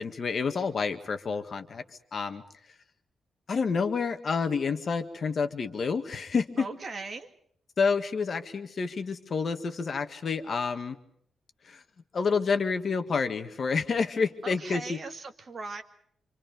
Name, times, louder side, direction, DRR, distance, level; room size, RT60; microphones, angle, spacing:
voice 1, 0.0-1.8 2.1-2.4 3.5-6.7 7.8-11.0 11.6-11.8 12.1-15.0, left 5 dB, 45° left, 7 dB, 1.8 m, -29 dB
voice 2, 6.6-7.3 14.4-15.8, right 3 dB, 35° right, 6 dB, 2.2 m, -38 dB
27.5 x 27.0 x 5.3 m, 0.67 s
wide cardioid pair, 160°, 0 cm